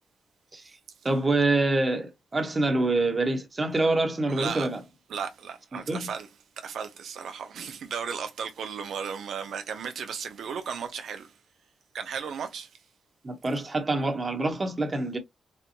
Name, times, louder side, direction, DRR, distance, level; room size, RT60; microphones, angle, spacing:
voice 1, 1.0-4.8 5.7-6.1 13.2-15.2, right 2 dB, 25° right, 1.0 m, -26 dB
voice 2, 4.3-4.7 5.1-6.3 6.6-11.3 11.9-12.8, right 6 dB, 75° right, 0.5 m, -35 dB
4.3 x 2.2 x 2.8 m
cardioid pair, 115°, 0 cm